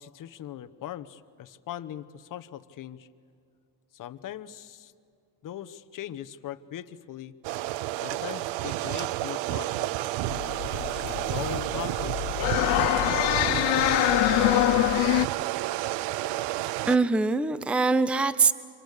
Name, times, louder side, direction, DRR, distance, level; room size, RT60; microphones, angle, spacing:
voice 1, 0.0-3.1 3.9-4.9 5.4-7.3 8.0-10.1 10.9-14.0, left 11 dB, 45° left, 11 dB, 1.1 m, -40 dB
sound 1, 7.4-17.0, right 16 dB, 75° right, 0.7 m, -30 dB
sound 2, 10.3-15.3, left 18 dB, 70° left, 0.7 m, -25 dB
voice 2, 16.9-18.5, right 4 dB, 5° right, 15 dB, 0.5 m, -23 dB
28.5 x 25.5 x 6.7 m, 2.5 s
cardioid pair, 135°, 43 cm